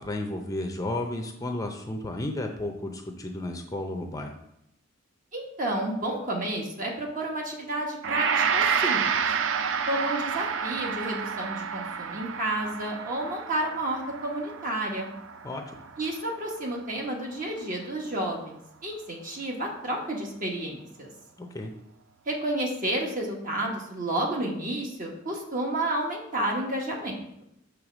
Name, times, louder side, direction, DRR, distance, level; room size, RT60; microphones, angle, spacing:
voice 1, 0.0-4.4 15.4-15.8 21.4-21.7, left 1 dB, 20° left, 3 dB, 0.6 m, -33 dB
voice 2, 5.3-9.0 9.9-15.1 16.0-21.1 22.3-27.2, right 1 dB, 45° right, 0 dB, 1.3 m, -31 dB
Gong, 8.0-17.2, right 6 dB, 80° right, 0.4 m, -29 dB
6.6 x 3.3 x 6.0 m, 0.78 s
head